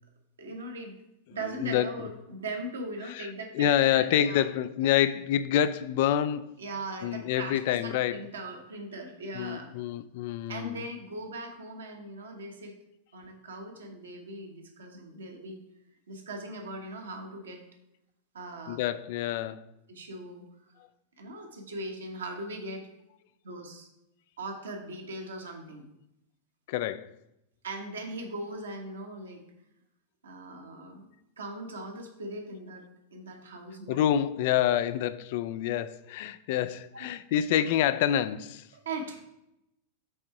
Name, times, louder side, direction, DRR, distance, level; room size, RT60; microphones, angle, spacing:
voice 1, 0.4-1.0 1.3-4.4 6.6-9.8 10.5-12.8 13.1-15.6 16.1-17.6 18.3-18.8 19.9-20.5 21.2-22.8 23.4-23.9 24.4-25.8 27.6-29.4 30.2-31.1 31.4-32.8 33.1-34.0 36.9-37.1 38.8-39.2, right 2 dB, 70° right, 1.3 m, -39 dB
voice 2, 1.6-2.1 3.1-6.5 7.0-8.2 9.3-10.8 18.7-19.6 26.7-27.1 33.9-38.6, left 11 dB, 50° left, 0.4 m, -27 dB
7.8 x 3.6 x 4.6 m
figure-of-eight pair, 90°, 0 cm